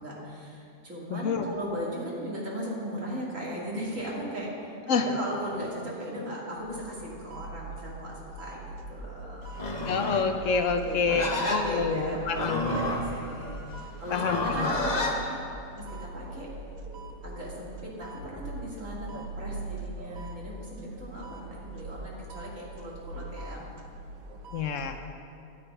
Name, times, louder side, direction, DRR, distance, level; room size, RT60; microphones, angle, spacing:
voice 1, 0.0-9.4 10.8-15.4 15.8-16.5 17.2-23.7, equal, 70° right, -5 dB, 3.0 m, -37 dB
voice 2, 1.1-1.5 4.9-5.1 9.9-12.8 14.1-14.8 24.5-25.0, left 5 dB, 70° left, 7 dB, 1.1 m, -28 dB
sound 1, 6.6-25.0, right 2 dB, 85° right, 1.3 m, -42 dB
Livestock farm animals working animals, 9.5-15.2, left 1 dB, 35° left, 1.2 m, -31 dB
12.5 x 9.9 x 5.5 m, 2.5 s
omnidirectional pair, 1.4 m